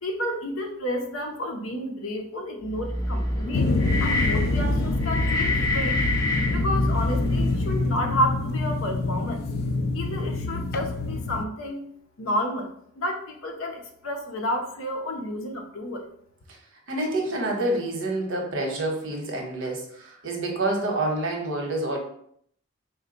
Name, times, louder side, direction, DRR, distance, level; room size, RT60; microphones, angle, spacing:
voice 1, 0.0-6.0 6.5-9.4 9.9-11.9 12.2-16.1, left 1 dB, 75° left, 3 dB, 0.7 m, -31 dB
sound 1, 2.6-8.0, left 1 dB, 15° left, 0.7 m, -26 dB
sound 2, 3.5-11.4, left 3 dB, 45° left, 0.3 m, -27 dB
voice 2, 16.9-22.0, right 1 dB, 65° right, 1 dB, 0.9 m, -28 dB
4.6 x 2.2 x 3.8 m, 0.66 s
head